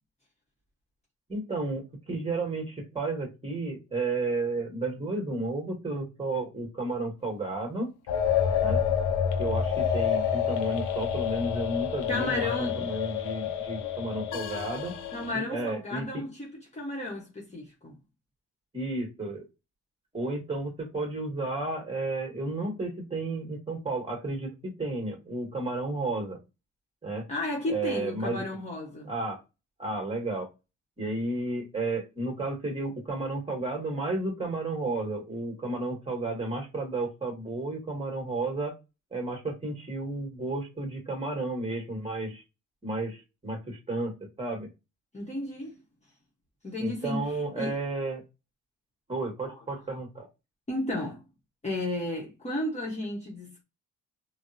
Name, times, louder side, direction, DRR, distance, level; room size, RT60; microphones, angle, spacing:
voice 1, 1.3-7.9 8.6-8.8 9.4-14.9 15.3-16.2 18.7-19.5 20.1-26.4 27.0-27.3 27.7-28.4 29.0-29.4 29.8-30.5 31.0-38.7 39.1-42.4 42.8-44.7 46.8-48.2 49.1-50.3, right 2 dB, 20° right, 1.4 m, -32 dB
sound 1, 8.1-15.3, left 8 dB, 80° left, 0.6 m, -28 dB
voice 2, 12.1-12.9 15.1-18.0 27.3-29.1 45.1-45.8 46.6-47.2 47.6-47.8 49.5-49.6 50.7-51.2 51.6-53.6, left 2 dB, 20° left, 0.9 m, -33 dB
3.5 x 2.0 x 2.6 m
cardioid pair, 90°, 30 cm